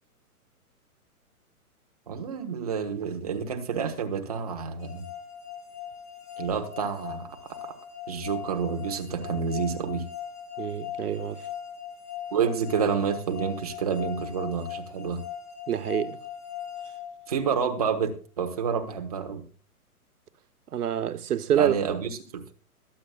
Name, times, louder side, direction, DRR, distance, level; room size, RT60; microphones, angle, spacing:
voice 1, 2.1-5.1 6.4-7.4 7.6-7.7 8.1-10.0 12.3-15.2 17.3-19.4 21.6-22.5, right 6 dB, 25° right, 1.1 m, -29 dB
sound 1, 4.8-17.8, left 9 dB, 10° left, 1.8 m, -40 dB
voice 2, 10.6-11.4 15.7-16.2 20.7-21.8, right 10 dB, 85° right, 1.1 m, -26 dB
22.0 x 8.2 x 2.3 m
hypercardioid pair, 180°, 44 cm